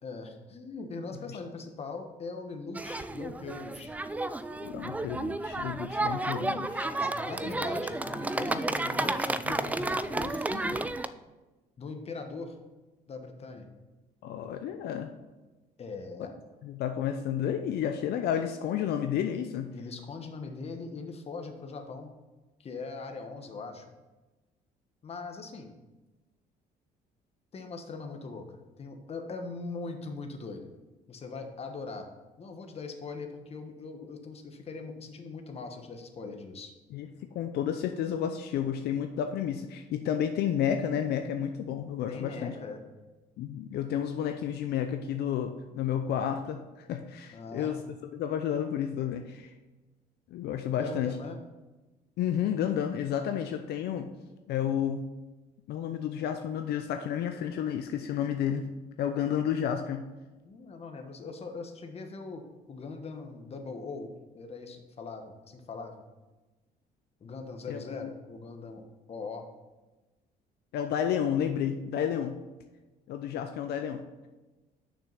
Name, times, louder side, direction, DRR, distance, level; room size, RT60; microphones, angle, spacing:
voice 1, 0.0-4.0 6.8-10.9 11.8-12.6 13.1-13.7 15.8-16.3 19.7-22.1 22.6-23.8 25.0-25.7 27.5-30.7 31.1-32.1 32.4-36.7 42.1-42.8 47.3-47.7 50.5-51.4 60.4-64.1 64.3-66.0 67.2-69.5, left 4 dB, 35° left, 5 dB, 1.2 m, -41 dB
sound 1, 2.7-11.1, right 2 dB, 10° right, 0.3 m, -32 dB
voice 2, 4.6-6.9 14.2-15.1 16.6-19.7 36.9-37.1 37.3-42.5 43.4-47.8 48.1-49.5 50.3-51.1 52.2-54.1 54.5-55.0 55.7-58.7 59.0-60.0 67.7-68.1 70.7-72.4 73.1-74.0, left 9 dB, 70° left, 6 dB, 0.6 m, -31 dB
6.6 x 6.2 x 5.7 m, 1.1 s
cardioid pair, 110°, 17 cm